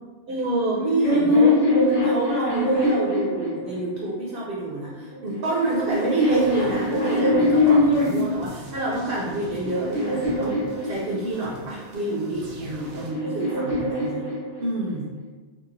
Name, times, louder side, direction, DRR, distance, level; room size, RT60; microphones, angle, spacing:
voice 1, 0.0-1.6 2.0-14.3 14.6-15.1, right 2 dB, 60° right, -4 dB, 0.7 m, -28 dB
sound 1, 0.7-4.1 5.0-8.4 9.1-11.5 12.5-14.9, left 1 dB, 90° left, 1.3 m, -23 dB
sound 2, 5.7-13.1, right 1 dB, 85° right, 0.9 m, -43 dB
3.0 x 2.4 x 2.4 m, 1.3 s
omnidirectional pair, 1.2 m